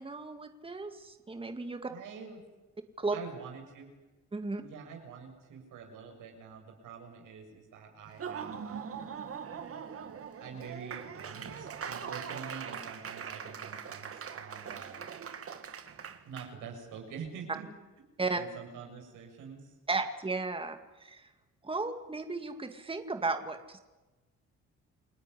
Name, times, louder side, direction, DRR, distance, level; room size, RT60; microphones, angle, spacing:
voice 1, 0.0-1.9 3.0-3.2 4.3-4.6 18.2-18.4 19.9-21.3 21.6-23.8, right 3 dB, 20° right, 7 dB, 2.2 m, -34 dB
voice 2, 1.9-2.4 3.1-3.9 4.6-9.1 10.0-10.1 10.4-15.1 16.2-17.7 18.2-19.8, right 6 dB, 85° right, 2 dB, 7.4 m, -46 dB
Laughter / Applause, 8.1-16.5, right 7 dB, 50° right, 2.1 m, -41 dB
29.0 x 19.5 x 10.0 m, 1.1 s
cardioid pair, 90°, 30 cm